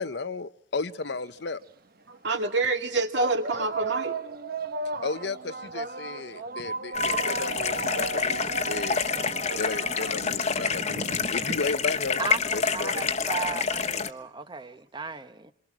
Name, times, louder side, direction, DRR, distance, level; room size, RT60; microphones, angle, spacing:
voice 1, 0.0-1.6 5.0-5.4 5.7-8.4 8.7-9.0 9.6-12.2 12.5-13.1, left 4 dB, 65° left, 0.9 m, -33 dB
sound 1, 1.1-1.2 2.1-2.3 3.2-12.1, right 4 dB, 55° right, 1.0 m, -35 dB
voice 2, 2.1-4.2 8.0-8.1 9.5-9.6, right 3 dB, 70° right, 2.3 m, -27 dB
sound 2, 6.9-14.1, left 6 dB, 40° left, 1.1 m, -28 dB
voice 3, 12.2-15.5, right 4 dB, 25° right, 0.9 m, -35 dB
28.0 x 23.0 x 6.2 m
head